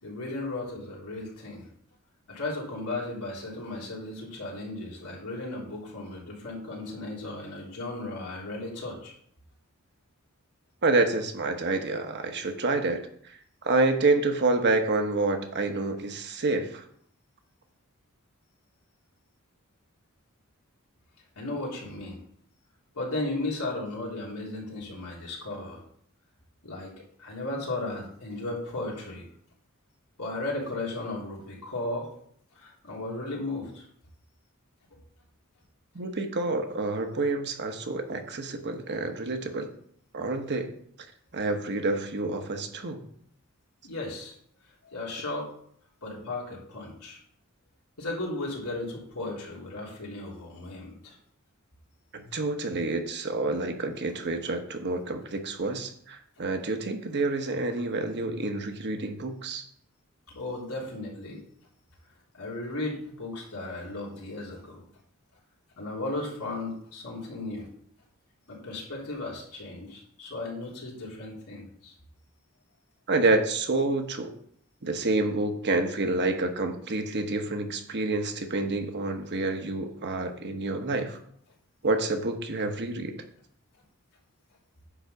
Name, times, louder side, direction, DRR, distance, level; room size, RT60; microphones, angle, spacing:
voice 1, 0.0-1.7 2.3-9.1 21.4-22.2 22.9-25.8 26.6-29.3 30.2-32.1 32.5-33.8 43.8-44.3 44.8-45.5 46.0-47.2 48.0-51.2 60.3-61.4 62.3-64.8 65.8-67.7 68.5-71.9, left 2 dB, 85° left, -4 dB, 3.6 m, -35 dB
voice 2, 10.8-13.0 13.3-16.8 35.9-39.7 40.1-40.7 41.3-43.0 52.1-59.7 73.1-74.3 74.8-81.2 81.8-83.1, right 2 dB, 50° right, 6 dB, 1.1 m, -28 dB
9.9 x 4.0 x 6.7 m, 0.63 s
head